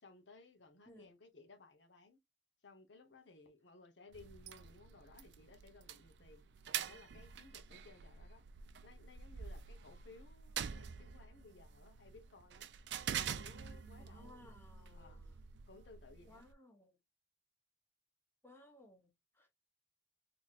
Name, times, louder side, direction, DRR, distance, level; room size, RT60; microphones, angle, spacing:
voice 1, 0.0-2.2 2.6-6.4 6.8-8.4 8.8-12.7 13.2-14.5 14.9-15.2 15.7-16.4, left 3 dB, 80° left, 1.0 m, -60 dB
voice 2, 0.9-1.2 14.0-15.4 16.3-17.0 18.4-19.5, left 1 dB, 15° left, 1.0 m, -61 dB
sound 1, 4.1-16.5, right 8 dB, 70° right, 0.4 m, -46 dB
4.0 x 3.0 x 2.4 m
head